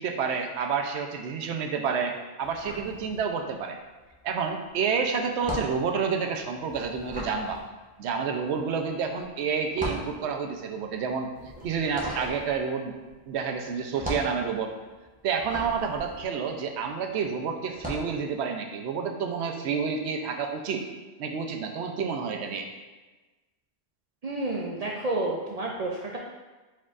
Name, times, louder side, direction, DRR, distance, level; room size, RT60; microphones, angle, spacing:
voice 1, 0.0-3.8 4.2-7.6 8.0-11.3 11.6-12.9 13.3-14.7 15.2-20.8 21.2-22.7, right 6 dB, 80° right, 4 dB, 0.8 m, -29 dB
sound 1, 2.4-3.7 3.9-17.1 17.6-18.2, equal, 10° right, 0.7 m, -39 dB
voice 2, 24.2-26.2, right 2 dB, 55° right, -2 dB, 0.4 m, -30 dB
4.6 x 4.5 x 2.4 m, 1.2 s
omnidirectional pair, 1.1 m